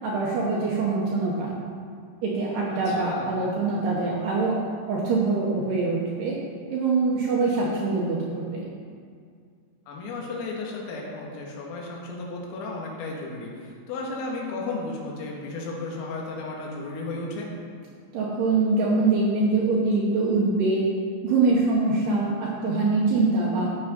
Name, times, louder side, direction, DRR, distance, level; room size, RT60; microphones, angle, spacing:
voice 1, 0.0-1.5 2.2-4.6 4.9-6.4 6.7-8.7 18.1-20.8 21.2-23.7, right 3 dB, 70° right, -4 dB, 2.5 m, -24 dB
voice 2, 2.9-3.3 9.9-17.5, left 3 dB, 80° left, -2 dB, 4.2 m, -34 dB
14.5 x 5.9 x 5.3 m, 2.2 s
omnidirectional pair, 6.0 m